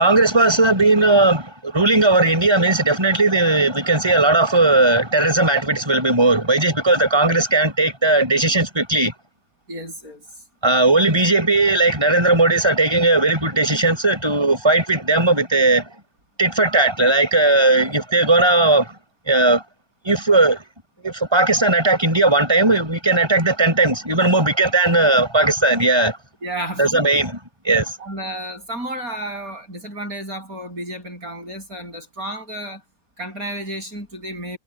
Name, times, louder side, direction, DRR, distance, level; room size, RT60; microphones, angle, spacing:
voice 1, 0.0-9.1 10.6-15.9 16.4-18.9 19.3-19.6 20.0-20.6 21.0-26.2 26.8-27.4 27.6-27.9, right 2 dB, 15° right, 5.9 m, -17 dB
voice 2, 9.7-10.3 26.4-27.2 28.0-32.8 33.2-34.6, right 1 dB, 60° right, 8.7 m, -32 dB
omnidirectional pair, 1.7 m